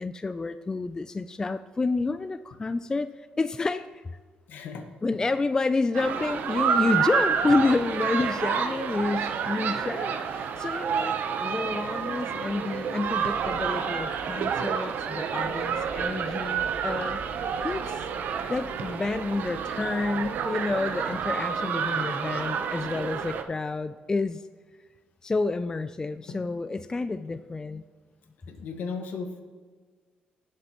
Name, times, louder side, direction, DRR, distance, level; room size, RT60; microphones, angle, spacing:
voice 1, 0.0-3.1 3.4-4.2 5.0-17.2 17.6-18.1 18.5-24.4 25.2-27.8, left 3 dB, 20° left, 12 dB, 0.3 m, -29 dB
voice 2, 4.5-4.9 7.8-7.9 8.2-8.3 9.8-9.9 26.3-26.4 28.5-29.4, left 5 dB, 70° left, 5 dB, 1.5 m, -36 dB
sound 1, 5.9-23.4, right 7 dB, 65° right, 0.8 m, -29 dB
17.0 x 7.6 x 3.0 m, 1.5 s
cardioid pair, 95°, 3 cm